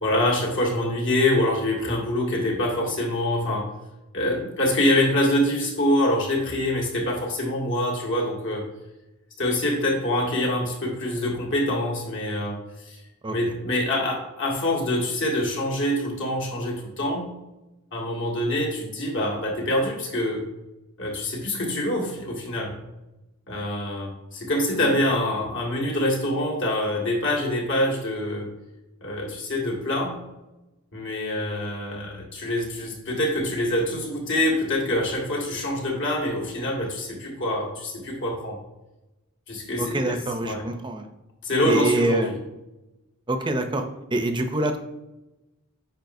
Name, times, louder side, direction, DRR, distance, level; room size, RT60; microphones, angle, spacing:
voice 1, 0.0-3.7 4.1-8.6 9.4-13.0 13.3-17.3 17.9-20.4 21.0-22.8 23.5-28.5 29.0-30.2 30.9-38.6 39.5-40.7 41.4-42.3, left 1 dB, 60° left, -2 dB, 1.9 m, -25 dB
voice 2, 39.8-41.1 41.7-42.3 43.3-43.8 44.1-44.8, right 1 dB, 20° right, 6 dB, 0.6 m, -25 dB
9.0 x 5.4 x 2.7 m, 0.98 s
head